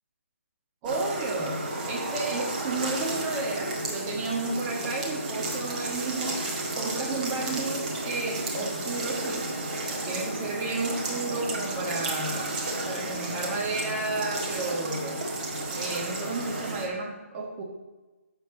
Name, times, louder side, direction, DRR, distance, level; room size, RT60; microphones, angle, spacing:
voice 1, 0.8-6.4 6.8-9.5 10.0-12.6 12.8-15.2 15.7-17.6, right 3 dB, 15° right, 0 dB, 1.4 m, -32 dB
sound 1, 0.9-16.9, right 2 dB, 35° right, 1.7 m, -32 dB
11.0 x 6.8 x 3.9 m, 1.1 s
figure-of-eight pair, 145°, 8 cm